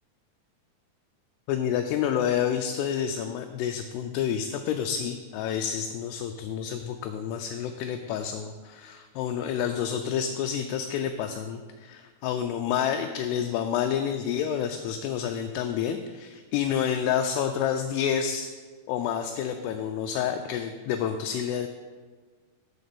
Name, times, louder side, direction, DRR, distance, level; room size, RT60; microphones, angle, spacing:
voice 1, 1.5-18.5 18.9-21.7, left 8 dB, 85° left, 5 dB, 2.5 m, -29 dB
9.2 x 4.3 x 6.9 m, 1.4 s
omnidirectional pair, 4.9 m